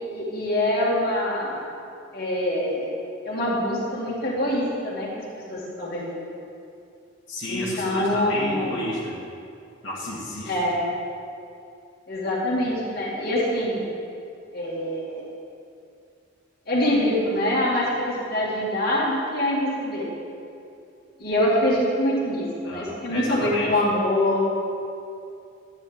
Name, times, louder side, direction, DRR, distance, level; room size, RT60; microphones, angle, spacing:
voice 1, 0.1-1.6 2.1-2.9 3.2-5.1 5.5-6.2 7.5-8.7 10.5-10.8 12.1-13.8 14.5-15.2 16.7-20.1 21.2-24.5, left 1 dB, 50° left, -5 dB, 2.3 m, -24 dB
voice 2, 7.3-9.2 9.8-10.5 22.6-23.8, left 1 dB, 70° left, -8 dB, 1.8 m, -31 dB
12.0 x 9.6 x 3.5 m, 2.5 s
head